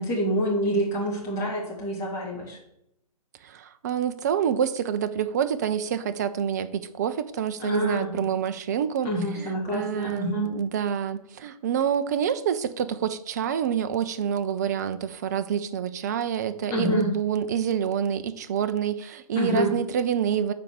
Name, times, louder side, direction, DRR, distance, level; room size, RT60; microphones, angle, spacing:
voice 1, 0.0-2.6 7.6-8.2 9.0-10.5 16.7-17.1 19.3-19.7, equal, 15° left, -4 dB, 2.6 m, -27 dB
voice 2, 3.4-9.1 9.3-20.5, right 8 dB, 25° right, 12 dB, 0.5 m, -27 dB
9.1 x 4.3 x 6.6 m, 0.78 s
figure-of-eight pair, 130°, 20 cm